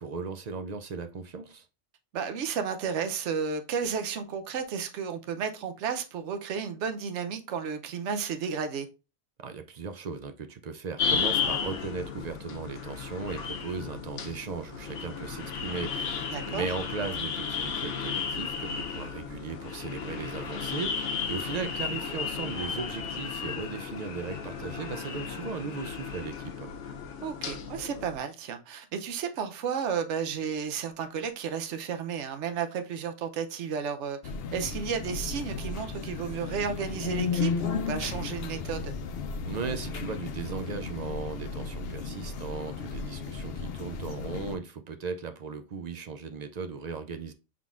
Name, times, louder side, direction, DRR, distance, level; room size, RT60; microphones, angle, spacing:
voice 1, 0.0-1.7 9.4-26.7 39.5-47.3, right 5 dB, 60° right, 0.4 m, -37 dB
voice 2, 2.1-8.9 16.3-16.7 27.2-34.2 34.5-38.9, right 6 dB, 80° right, 1.0 m, -32 dB
sound 1, 11.0-28.2, left 6 dB, 85° left, 1.1 m, -34 dB
sound 2, 34.2-44.6, left 5 dB, 65° left, 0.7 m, -34 dB
5.8 x 3.7 x 2.4 m
omnidirectional pair, 1.2 m